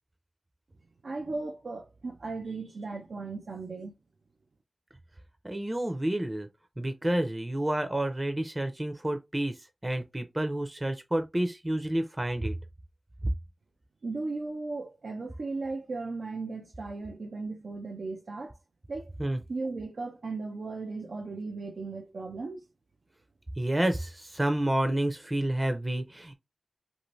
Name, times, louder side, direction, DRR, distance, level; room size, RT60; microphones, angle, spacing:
voice 1, 1.0-4.0 14.0-18.6 18.9-19.1 19.5-22.7, right 3 dB, 90° right, 0.5 m, -36 dB
voice 2, 5.4-6.5 6.8-9.5 9.8-12.6 19.2-19.4 23.6-26.3, right 1 dB, 25° right, 0.6 m, -29 dB
2.7 x 2.5 x 3.1 m
cardioid pair, 45°, 0 cm